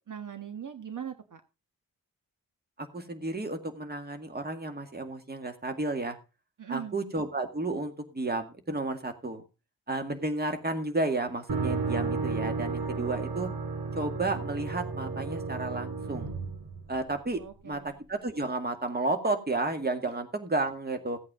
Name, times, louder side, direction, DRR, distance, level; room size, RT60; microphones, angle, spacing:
voice 1, 0.1-1.4 6.6-6.9 17.4-17.9, right 9 dB, 60° right, 6 dB, 1.5 m, -40 dB
voice 2, 2.8-6.2 6.7-9.4 9.9-13.5 13.9-16.3 16.9-21.2, right 2 dB, 25° right, 6 dB, 2.0 m, -32 dB
sound 1, 11.5-17.4, right 4 dB, 90° right, 4.3 m, -33 dB
16.5 x 8.5 x 3.7 m, 0.30 s
wide cardioid pair, 150°, 35 cm